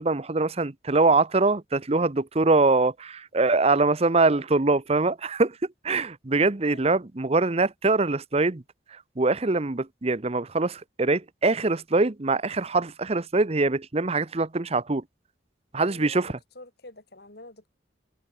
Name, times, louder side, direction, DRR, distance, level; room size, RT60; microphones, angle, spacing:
voice 1, 0.0-5.6 5.8-8.6 9.2-15.0 15.7-16.3, right 3 dB, 35° right, 0.8 m, -23 dB
voice 2, 15.8-17.7, left 2 dB, 60° left, 4.5 m, -47 dB
head